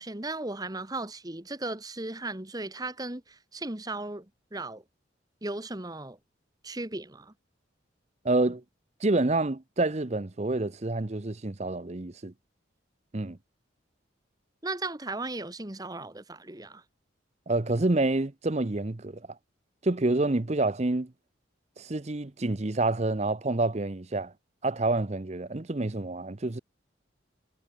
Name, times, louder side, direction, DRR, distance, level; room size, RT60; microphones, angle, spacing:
voice 1, 0.0-4.3 4.5-4.8 5.4-6.2 6.6-7.3 14.6-16.8, right 2 dB, 20° right, 1.4 m, -36 dB
voice 2, 8.2-8.6 9.0-12.3 13.1-13.4 17.5-19.2 19.8-21.1 21.8-24.3 24.6-26.6, right 2 dB, 35° right, 0.8 m, -28 dB
head